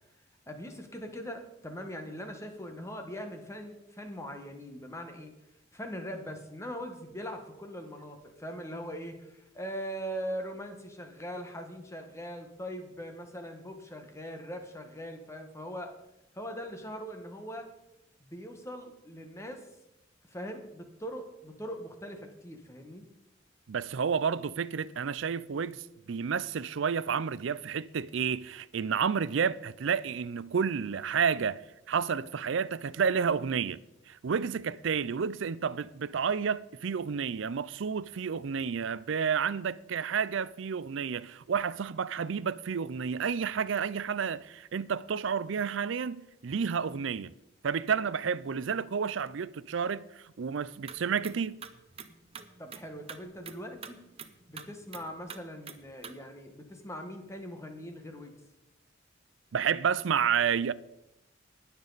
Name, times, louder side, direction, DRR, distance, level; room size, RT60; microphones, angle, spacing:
voice 1, 0.5-5.3 5.7-15.9 16.3-17.7 18.2-19.6 20.3-23.0 52.6-54.0 54.5-58.4, equal, 15° left, 1.4 m, -41 dB
voice 2, 23.7-31.6 31.9-33.8 34.1-47.3 47.6-51.6 59.5-60.7, right 6 dB, 70° right, 0.4 m, -30 dB
sound 1, 50.7-56.1, right 6 dB, 30° right, 0.8 m, -47 dB
19.5 x 7.1 x 4.0 m
head